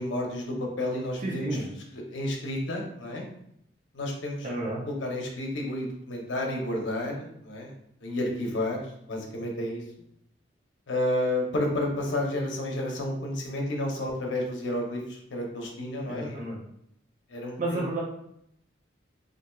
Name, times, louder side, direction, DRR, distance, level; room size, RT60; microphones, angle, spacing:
voice 1, 0.0-1.5 1.9-3.3 3.9-4.5 4.9-7.7 8.0-8.8 9.1-9.8 10.9-16.4 17.3-17.8, left 1 dB, 80° left, 0 dB, 0.7 m, -31 dB
voice 2, 1.2-1.7 4.4-4.8 16.0-16.6 17.3-18.0, right 2 dB, 45° right, -3 dB, 0.6 m, -32 dB
4.1 x 2.5 x 2.3 m, 0.73 s
head